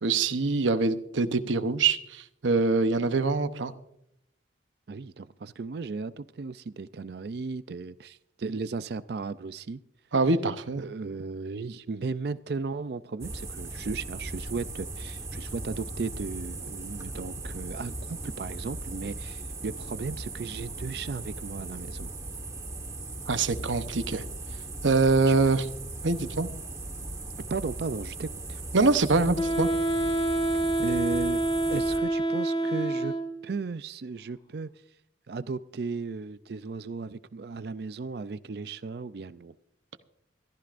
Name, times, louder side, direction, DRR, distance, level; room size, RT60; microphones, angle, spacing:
voice 1, 0.0-3.7 10.1-10.8 23.3-24.2 24.8-25.7 26.0-26.5 28.7-29.7, right 3 dB, 85° right, 0.9 m, -24 dB
voice 2, 4.9-9.8 10.8-22.1 25.3-25.4 27.5-28.6 30.8-31.4 31.7-33.1 33.4-34.7 35.3-39.6, right 4 dB, 55° right, 0.4 m, -35 dB
sound 1, 13.2-32.0, right 2 dB, 15° right, 1.3 m, -38 dB
Wind instrument woodwind instrument, 29.4-33.5, right 1 dB, 20° left, 1.3 m, -27 dB
21.5 x 15.0 x 2.5 m
head